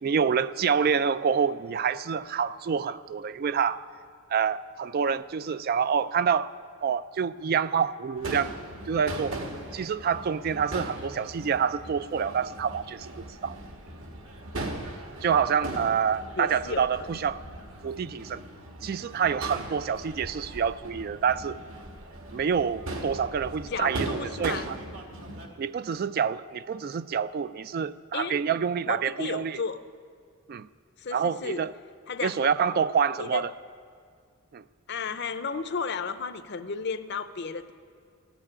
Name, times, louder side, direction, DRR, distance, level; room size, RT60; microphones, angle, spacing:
voice 1, 0.0-3.9 4.3-6.5 6.8-8.5 8.9-9.4 9.7-13.6 14.5-14.7 15.2-17.4 17.8-18.4 18.8-21.6 22.3-24.8 25.6-29.6 30.5-30.7 31.1-31.7 32.2-33.5 34.5-34.6, right 7 dB, 45° right, 0.3 m, -27 dB
Crowd / Fireworks, 8.2-25.5, right 1 dB, 65° right, 1.7 m, -39 dB
voice 2, 15.6-16.0 16.4-17.1 23.7-24.7 28.1-28.4 28.9-29.8 31.0-31.6 32.1-32.5 33.2-33.4 34.9-37.7, left 5 dB, 50° left, 0.6 m, -33 dB
14.5 x 9.0 x 9.8 m
head